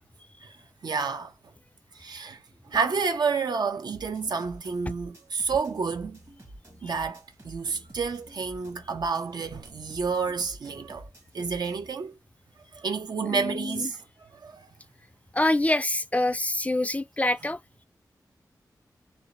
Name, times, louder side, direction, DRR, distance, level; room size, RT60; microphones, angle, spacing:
voice 1, 0.8-1.3 2.0-2.4 2.7-6.2 6.8-11.1 11.3-12.1 12.8-14.0 14.4-14.7, right 5 dB, 70° right, 0.5 m, -29 dB
sound 1, 3.9-11.9, right 1 dB, 45° right, 1.1 m, -49 dB
voice 2, 13.3-13.9 15.3-17.6, left 1 dB, 20° left, 0.3 m, -26 dB
2.6 x 2.0 x 3.0 m
cardioid pair, 45°, 7 cm